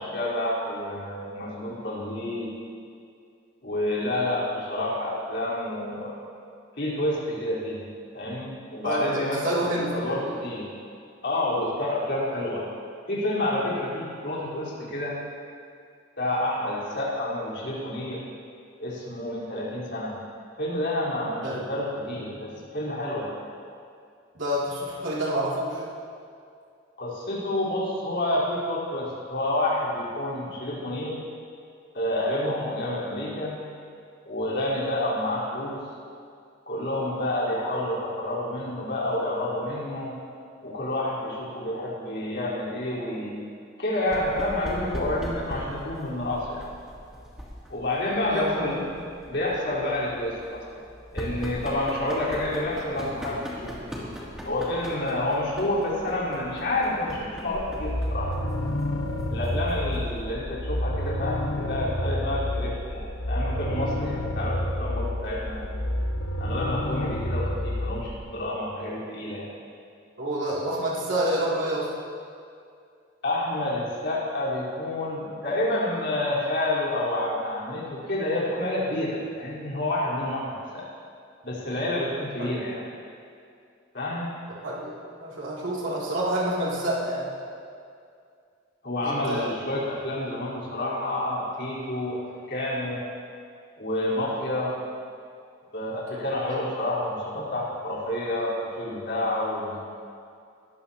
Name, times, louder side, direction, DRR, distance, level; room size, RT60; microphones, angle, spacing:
voice 1, 0.0-2.5 3.6-6.2 6.7-7.8 8.1-10.7 11.2-12.7 13.1-15.2 16.2-18.2 18.8-20.2 20.6-23.3 27.0-31.2 31.9-33.6 34.2-35.8 36.7-40.1 40.6-43.3 43.8-46.7 47.7-48.8 49.3-50.8 51.1-53.9 54.4-58.5 59.3-65.7 66.4-69.5 73.2-80.9 81.4-82.8 83.9-84.3 88.8-93.0 93.8-94.7 95.7-99.8, left 1 dB, 60° left, -7 dB, 4.1 m, -29 dB
voice 2, 8.8-10.1 21.4-21.6 22.1-22.2 24.3-25.8 48.3-48.9 70.2-71.9 82.4-82.5 84.5-84.9 85.2-87.3 89.0-89.5 97.3-97.6, right 1 dB, 85° right, -6 dB, 2.8 m, -28 dB
sound 1, 44.0-60.2, equal, 5° right, 2.6 m, -40 dB
sound 2, 57.5-68.2, left 1 dB, 90° left, 1.3 m, -29 dB
21.0 x 14.0 x 2.9 m, 2.4 s
head